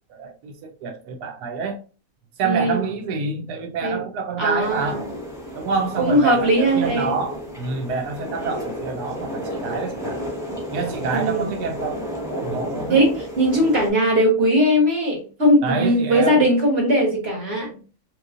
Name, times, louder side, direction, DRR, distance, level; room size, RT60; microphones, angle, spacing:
voice 1, 0.1-1.8 2.4-5.1 5.5-10.2 10.7-12.0 12.3-13.0 15.6-16.5, right 4 dB, 90° right, 1.2 m, -27 dB
voice 2, 2.4-2.8 3.8-4.0 4.4-5.0 6.0-7.1 11.1-11.5 12.9-17.7, equal, 45° right, 1.1 m, -19 dB
sound 1, 4.6-13.9, equal, 5° right, 0.8 m, -32 dB
3.0 x 2.9 x 2.4 m
omnidirectional pair, 1.6 m